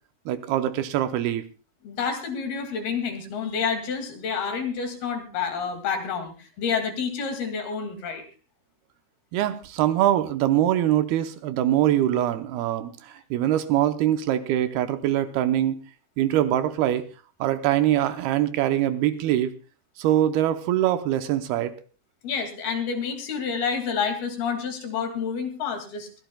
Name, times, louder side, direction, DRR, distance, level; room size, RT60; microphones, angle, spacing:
voice 1, 0.3-1.5 9.3-15.8 16.2-17.1 17.4-19.5 20.0-21.8, right 12 dB, 80° right, 9 dB, 2.6 m, -23 dB
voice 2, 1.8-8.2 22.2-26.1, left 6 dB, 70° left, 5 dB, 4.2 m, -29 dB
22.5 x 15.5 x 2.3 m, 0.33 s
omnidirectional pair, 4.7 m